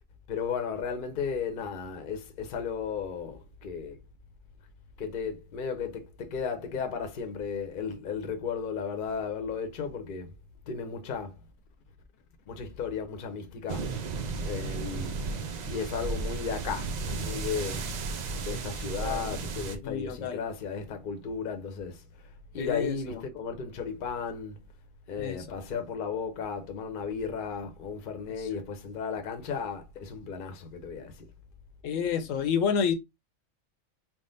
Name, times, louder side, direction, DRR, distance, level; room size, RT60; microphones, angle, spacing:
voice 1, 0.3-4.0 5.0-10.4 10.7-11.4 12.5-13.9 14.4-17.9 18.3-22.0 22.5-24.6 25.1-31.3, left 6 dB, 50° left, 0.7 m, -35 dB
sound 1, 13.7-19.8, right 4 dB, 85° right, 0.3 m, -34 dB
voice 2, 19.0-19.4 19.8-20.4 22.6-23.2 25.2-25.6 28.4-28.5 31.8-32.9, left 7 dB, 75° left, 1.0 m, -30 dB
3.7 x 2.1 x 3.8 m
omnidirectional pair, 1.4 m